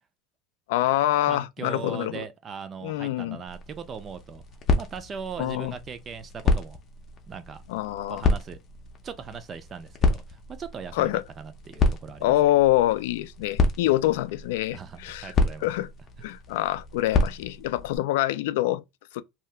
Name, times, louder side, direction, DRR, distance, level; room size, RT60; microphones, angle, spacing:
voice 1, 0.7-2.3 2.8-3.4 5.4-5.7 7.7-8.3 10.9-11.2 12.2-15.3 15.6-15.9 16.2-18.8 19.1-19.2, left 15 dB, 90° left, 0.3 m, -25 dB
voice 2, 1.3-4.4 4.8-6.8 7.3-7.6 8.1-8.6 9.0-12.3 14.7-15.7, right 6 dB, 20° right, 0.4 m, -39 dB
sound 1, 3.5-18.0, left 3 dB, 30° left, 0.5 m, -29 dB
2.8 x 2.3 x 3.2 m
cardioid pair, 165°, 0 cm